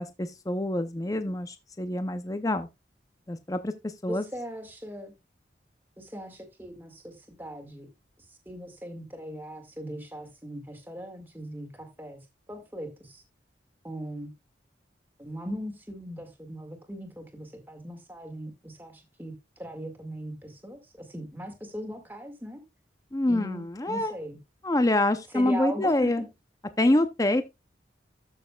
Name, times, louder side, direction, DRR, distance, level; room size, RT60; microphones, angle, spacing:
voice 1, 0.0-2.7 3.3-4.2 23.1-24.1 24.6-26.2 26.8-27.4, left 1 dB, 20° left, 0.6 m, -26 dB
voice 2, 4.1-5.1 6.0-7.9 8.3-12.2 12.5-13.2 13.8-14.3 15.2-22.6 23.3-24.4 25.3-26.3, equal, 10° right, 1.9 m, -39 dB
13.0 x 6.6 x 2.3 m
head